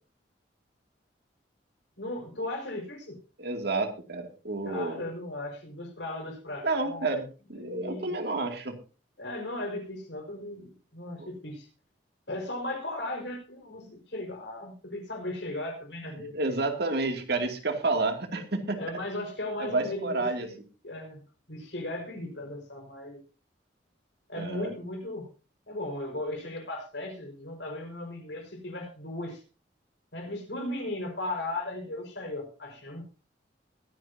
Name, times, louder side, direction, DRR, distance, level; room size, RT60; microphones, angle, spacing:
voice 1, 2.0-3.2 4.6-7.1 7.6-8.2 9.2-11.7 12.3-16.4 18.7-20.6 20.8-21.2 21.5-23.2 24.3-25.3 25.7-29.4 30.1-33.0, left 1 dB, 70° left, 3 dB, 4.9 m, -36 dB
voice 2, 3.4-5.0 6.6-8.7 11.2-11.3 16.1-18.8 19.6-20.5 24.4-24.7, right 3 dB, 65° right, 5 dB, 2.4 m, -30 dB
21.5 x 9.5 x 2.7 m, 0.33 s
head